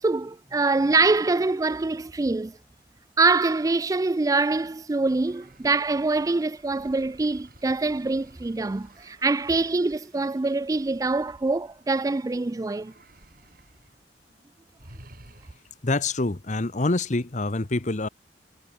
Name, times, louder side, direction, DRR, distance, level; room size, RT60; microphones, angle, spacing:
voice 1, 0.0-2.6 3.2-12.9, right 3 dB, 20° right, 0.4 m, -24 dB
sound 1, 5.2-12.3 12.7-14.0 14.3-14.4 14.8-15.9, right 1 dB, 55° right, 7.3 m, -53 dB
voice 2, 15.8-18.1, left 2 dB, 45° left, 1.1 m, -26 dB
head